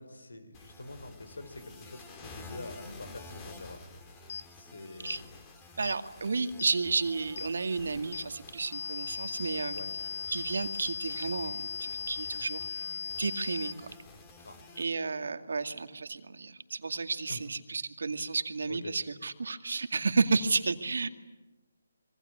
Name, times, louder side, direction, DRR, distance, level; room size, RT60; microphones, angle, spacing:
voice 1, 0.0-3.8 4.5-5.3 9.7-9.9 14.4-14.6 17.3-17.4 18.7-18.9, left 2 dB, 80° left, 10 dB, 5.1 m, -45 dB
sound 1, 0.5-14.8, left 3 dB, 20° left, 3.5 m, -51 dB
heart monitor beep, 4.3-4.5 5.1-5.2 5.8-6.0 6.6-6.8 7.4-7.5 8.1-8.3 8.7-13.7, left 5 dB, 45° left, 1.3 m, -37 dB
voice 2, 5.8-9.8 10.3-12.8 13.2-13.8 14.8-21.1, right 4 dB, 70° right, 8 dB, 2.2 m, -32 dB
26.0 x 24.0 x 9.6 m, 1.1 s
figure-of-eight pair, 155°, 0 cm